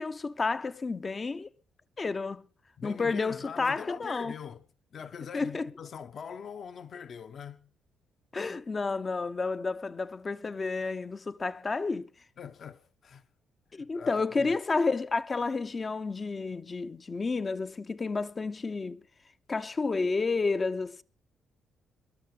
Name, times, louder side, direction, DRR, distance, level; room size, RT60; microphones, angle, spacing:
voice 1, 0.0-1.5 2.0-2.4 2.8-4.3 5.3-5.7 8.3-12.1 13.7-19.0 19.5-21.0, left 4 dB, 30° left, 0.8 m, -31 dB
voice 2, 2.8-4.6 4.9-7.7 12.4-13.2 13.7-14.5, left 7 dB, 55° left, 1.2 m, -42 dB
24.5 x 12.5 x 3.3 m
cardioid pair, 90°, 0 cm